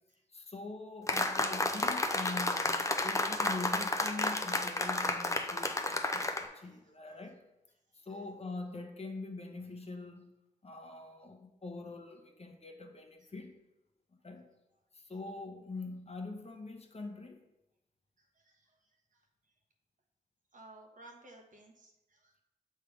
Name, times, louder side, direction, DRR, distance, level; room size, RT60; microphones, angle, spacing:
voice 1, 0.3-7.4 8.0-10.3 10.6-13.5 14.2-14.5 14.9-17.4, left 3 dB, 40° left, 4 dB, 1.0 m, -44 dB
sound 1, 1.1-6.5, left 2 dB, 20° left, 0.7 m, -32 dB
voice 2, 20.5-22.4, right 2 dB, 50° right, 2 dB, 1.2 m, -55 dB
6.5 x 3.5 x 4.9 m, 0.94 s
cardioid pair, 50°, 16 cm